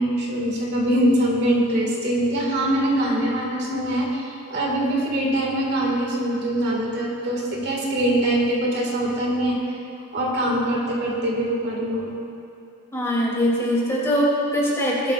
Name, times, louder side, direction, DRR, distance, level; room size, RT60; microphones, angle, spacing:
voice 1, 0.0-9.6 10.1-12.1, right 1 dB, 50° right, -2 dB, 2.0 m, -23 dB
voice 2, 12.9-15.1, equal, 10° left, -6 dB, 2.8 m, -22 dB
20.5 x 12.5 x 2.5 m, 2.6 s
head